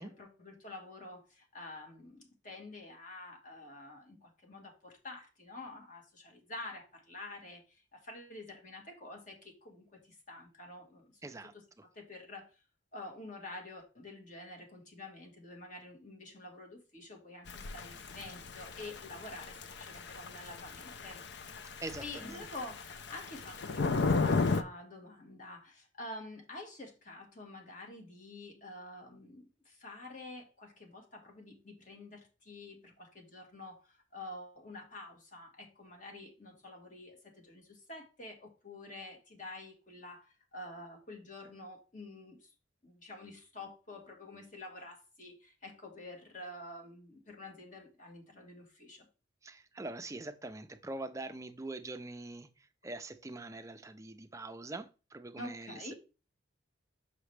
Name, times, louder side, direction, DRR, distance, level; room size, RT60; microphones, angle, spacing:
voice 1, 0.0-12.6 12.9-21.2 22.0-42.5 42.8-49.1 55.4-55.9, left 2 dB, 40° left, 1.7 m, -48 dB
voice 2, 11.2-11.5 21.8-22.4 49.4-55.9, right 2 dB, 15° right, 0.4 m, -43 dB
Thunder / Rain, 17.5-24.6, left 4 dB, 60° left, 0.4 m, -35 dB
6.1 x 5.8 x 3.3 m
head